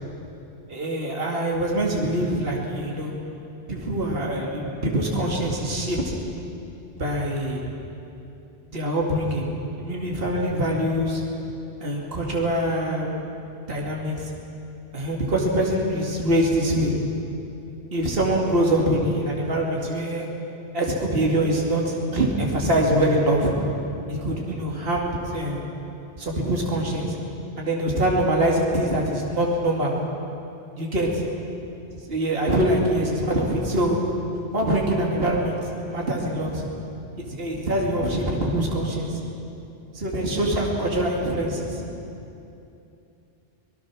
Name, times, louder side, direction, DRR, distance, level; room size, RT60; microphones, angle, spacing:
voice 1, 0.7-3.1 3.7-6.1 7.0-7.7 8.7-9.5 9.8-11.2 11.8-13.3 13.6-14.3 14.9-17.0 17.9-20.3 20.7-23.5 24.1-25.6 26.2-27.1 27.6-29.9 30.8-31.2 32.1-34.0 34.5-36.7 37.2-39.2 39.9-41.8, right 1 dB, 50° right, -2 dB, 2.6 m, -24 dB
26.0 x 19.0 x 6.2 m, 2.7 s
omnidirectional pair, 1.2 m